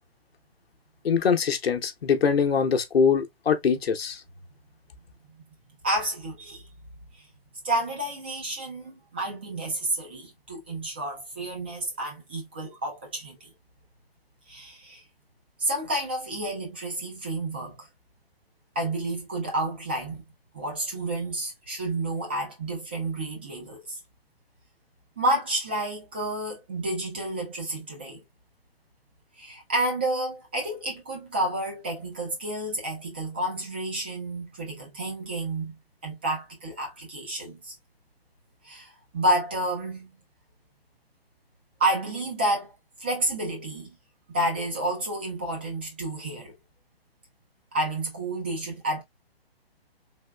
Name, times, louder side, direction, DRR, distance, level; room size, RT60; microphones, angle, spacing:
voice 1, 1.0-4.2, left 6 dB, 75° left, 0.8 m, -23 dB
voice 2, 5.8-6.7 7.1-7.2 7.6-13.5 14.5-15.0 15.6-17.9 18.8-20.2 20.5-24.0 25.2-28.2 29.4-35.7 36.0-37.8 38.6-40.1 41.8-42.7 43.0-43.9 44.3-46.5 47.7-49.0, right 1 dB, 10° right, 0.3 m, -30 dB
3.5 x 2.9 x 2.2 m
hypercardioid pair, 140°, 30 cm